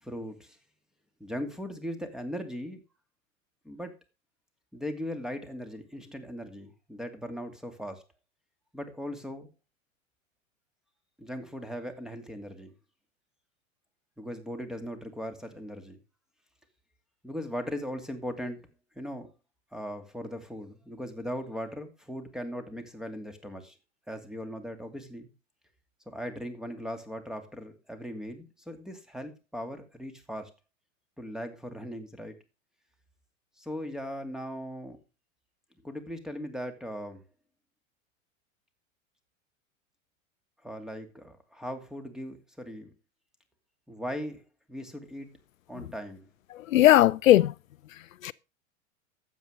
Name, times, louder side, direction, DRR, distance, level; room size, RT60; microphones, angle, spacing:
voice 1, 0.0-0.6 1.2-2.8 3.6-4.0 4.7-8.0 8.7-9.5 11.2-12.7 14.2-16.0 17.2-18.7 18.9-19.3 19.7-23.8 24.1-25.3 26.1-30.5 31.2-32.3 33.6-35.0 35.8-37.2 40.6-42.9 43.9-45.3 45.7-46.2, equal, ahead, 2.5 m, -38 dB
voice 2, 46.5-47.5 47.9-48.3, left 14 dB, 75° left, 0.6 m, -20 dB
12.5 x 8.4 x 5.1 m
hypercardioid pair, 100°, 40 cm